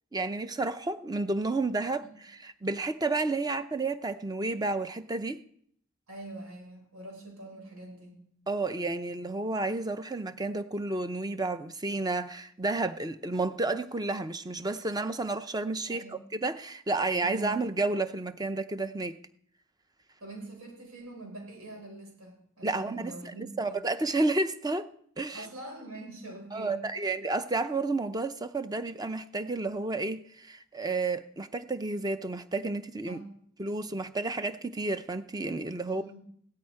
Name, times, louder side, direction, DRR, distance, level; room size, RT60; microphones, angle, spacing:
voice 1, 0.1-5.4 8.5-19.2 22.6-24.9 25.2-25.5 26.5-33.2 33.6-36.0, right 3 dB, 15° right, 0.6 m, -31 dB
voice 2, 6.1-8.3 15.9-16.2 17.2-17.5 20.2-23.8 25.3-27.1 33.0-33.3 35.9-36.2, right 2 dB, 80° right, 6.7 m, -44 dB
16.5 x 13.0 x 4.7 m
head